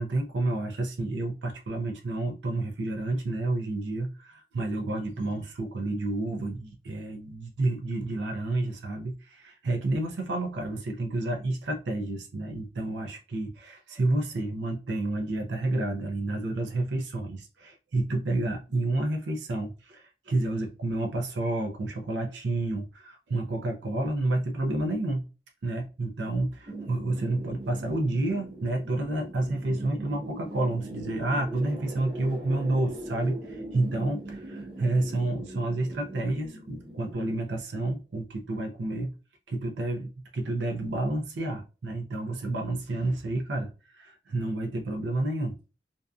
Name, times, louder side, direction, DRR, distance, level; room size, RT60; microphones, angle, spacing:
voice 1, 0.0-25.2 25.6-39.1 39.5-45.6, right 2 dB, 90° right, 0.5 m, -30 dB
sound 1, 26.7-37.1, right 2 dB, 25° right, 0.6 m, -40 dB
2.6 x 2.3 x 2.3 m
head